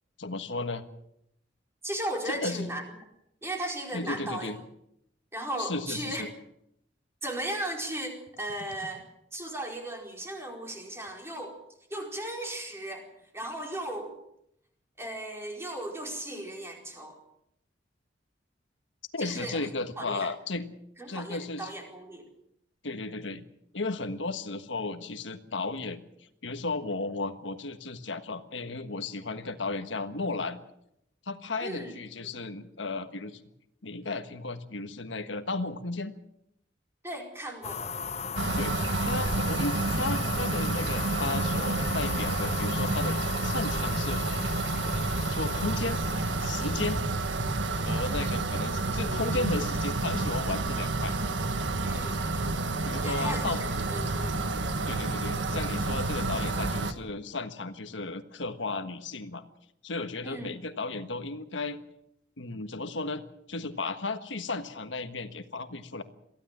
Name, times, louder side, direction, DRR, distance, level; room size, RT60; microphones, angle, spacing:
voice 1, 0.2-0.9 2.2-2.7 3.9-4.6 5.6-6.3 19.1-20.7 21.1-21.7 22.8-23.5 23.7-26.0 26.4-30.6 31.2-33.4 33.8-36.1 38.6-38.8 39.0-44.5 45.2-46.0 46.4-47.0 47.7-51.2 52.8-53.6 54.9-59.4 59.8-61.8 62.4-66.0, left 3 dB, 90° left, 9 dB, 1.5 m, -34 dB
voice 2, 1.8-2.8 3.4-4.5 5.3-6.2 7.2-9.0 9.3-11.6 11.9-14.2 15.0-17.2 19.2-19.7 20.0-20.3 21.0-22.3 31.6-31.9 32.2-32.3 37.0-37.8 51.8-52.2 53.0-54.5 60.2-60.5, right 1 dB, 15° right, 1 dB, 4.6 m, -36 dB
sound 1, 37.6-47.0, left 6 dB, 35° left, 0.8 m, -37 dB
sound 2, 38.4-56.9, right 2 dB, 85° right, 1.7 m, -29 dB
23.0 x 15.5 x 7.5 m, 0.77 s
head